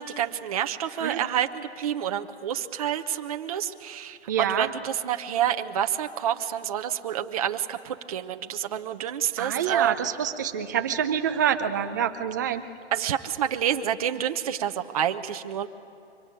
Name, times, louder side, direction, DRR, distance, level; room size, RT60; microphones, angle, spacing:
voice 1, 0.0-9.9 12.9-15.7, right 10 dB, 30° right, 6 dB, 0.9 m, -28 dB
voice 2, 4.3-4.7 9.4-12.6, right 9 dB, 15° right, 9 dB, 0.6 m, -26 dB
24.5 x 24.5 x 9.1 m, 2.5 s
hypercardioid pair, 160°, 35 cm